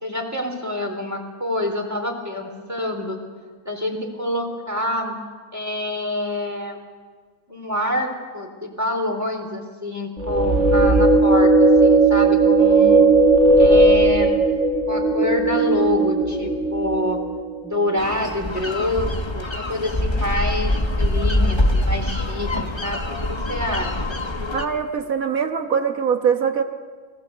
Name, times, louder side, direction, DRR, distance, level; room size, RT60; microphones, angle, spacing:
voice 1, 0.0-3.2 3.7-5.2 5.5-6.8 7.5-13.1 13.6-14.3 14.9-17.2 17.6-24.2, left 1 dB, 10° right, 2 dB, 3.8 m, -27 dB
sound 1, 10.2-17.5, right 2 dB, 50° right, 2.3 m, -16 dB
sound 2, 18.0-24.7, left 1 dB, 20° left, 1.3 m, -24 dB
voice 2, 24.5-26.6, right 7 dB, 70° right, 7 dB, 1.7 m, -22 dB
29.5 x 20.5 x 8.0 m, 1.5 s
omnidirectional pair, 1.5 m